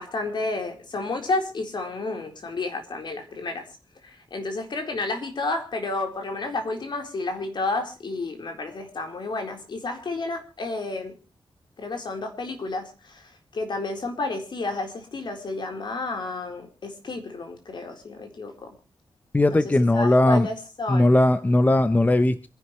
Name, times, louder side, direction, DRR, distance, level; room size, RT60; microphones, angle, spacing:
voice 1, 0.0-3.7 4.0-11.1 11.8-18.7 19.5-19.6 19.9-21.1, left 3 dB, 60° left, 4 dB, 4.1 m, -31 dB
voice 2, 19.3-20.5 20.9-22.5, left 1 dB, 20° left, 12 dB, 0.8 m, -19 dB
26.5 x 11.0 x 3.2 m, 0.34 s
wide cardioid pair, 140°, 9 cm